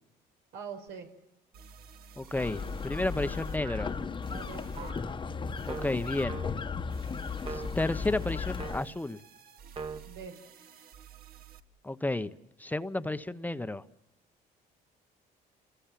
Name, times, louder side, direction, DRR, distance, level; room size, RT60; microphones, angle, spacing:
voice 1, 0.5-1.1 4.3-4.9 10.0-10.3, right 6 dB, 85° right, 4 dB, 5.6 m, -43 dB
sound 1, 0.9-1.0 1.5-3.6 4.2-4.9 5.6-6.3 6.9-11.6, right 7 dB, 60° right, 2.0 m, -52 dB
voice 2, 2.2-3.9 5.7-6.4 7.5-9.2 11.8-12.3 12.6-13.8, left 2 dB, 10° left, 11 dB, 1.0 m, -32 dB
sound 2, 2.3-8.8, left 5 dB, 30° left, 1.2 m, -36 dB
sound 3, 3.6-4.1 4.8-5.1 5.7-6.8 7.4-7.9 8.6-9.1 9.8-10.0, right 4 dB, 30° right, 1.5 m, -42 dB
28.5 x 21.5 x 7.6 m, 0.83 s
cardioid pair, 110°, 17 cm